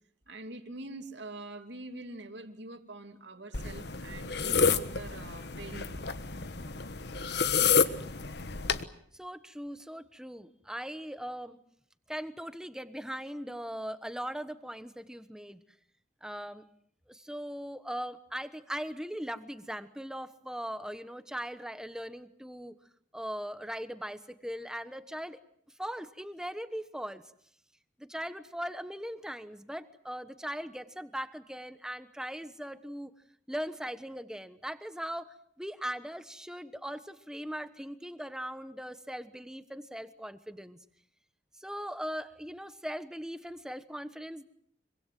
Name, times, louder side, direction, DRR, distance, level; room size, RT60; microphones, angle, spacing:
voice 1, 0.3-6.0, right 2 dB, 65° right, 6 dB, 2.9 m, -44 dB
sound 1, 3.5-8.8, left 5 dB, 60° left, 1.3 m, -29 dB
voice 2, 9.1-11.6 12.1-15.6 16.2-16.6 17.1-22.7 23.1-25.4 25.8-27.2 28.0-33.1 33.5-35.3 35.6-40.8 41.6-44.4, equal, 5° right, 11 dB, 1.2 m, -39 dB
26.0 x 24.5 x 7.7 m, 0.67 s
head